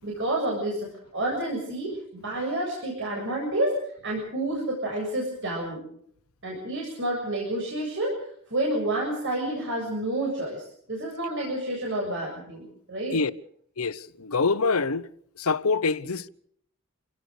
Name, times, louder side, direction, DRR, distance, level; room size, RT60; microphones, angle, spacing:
voice 1, 0.0-3.8 4.0-5.8 6.4-8.2 8.5-13.2, right 1 dB, 60° right, 7.5 m, -29 dB
voice 2, 13.8-15.1 15.4-16.3, left 4 dB, 90° left, 0.9 m, -25 dB
28.5 x 17.5 x 6.6 m
head